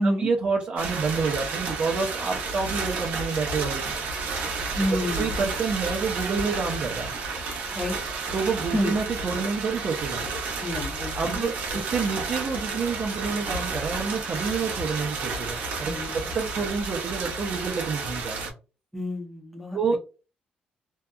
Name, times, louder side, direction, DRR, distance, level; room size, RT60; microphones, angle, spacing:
voice 1, 0.0-3.9 5.0-7.2 8.3-10.3 11.1-18.5 19.7-20.0, right 5 dB, 45° right, 0 dB, 0.5 m, -28 dB
sound 1, 0.8-18.5, right 4 dB, 75° right, 0.7 m, -31 dB
voice 2, 4.7-5.3 7.7-7.9 8.7-8.9 10.6-11.8 15.8-16.1 18.9-20.0, equal, ahead, 2 dB, 0.8 m, -29 dB
2.7 x 2.2 x 2.3 m, 0.34 s
cardioid pair, 115°, 3 cm